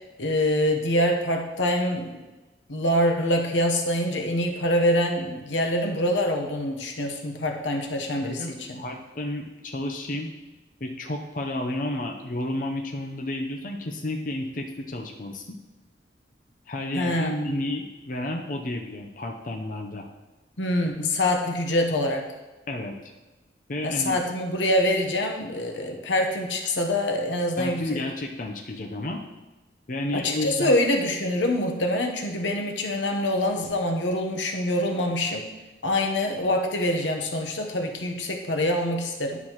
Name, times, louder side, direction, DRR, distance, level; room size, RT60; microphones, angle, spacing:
voice 1, 0.2-2.1 2.7-8.8 16.9-17.5 20.6-22.3 23.8-28.0 30.1-35.5 35.8-39.4, left 1 dB, 90° left, 3 dB, 0.9 m, -25 dB
voice 2, 8.8-10.3 10.8-15.6 16.7-20.1 22.7-23.1 23.7-24.2 27.6-29.2 29.9-30.8, left 1 dB, 45° left, 2 dB, 0.6 m, -31 dB
9.7 x 6.0 x 3.0 m, 1.1 s
head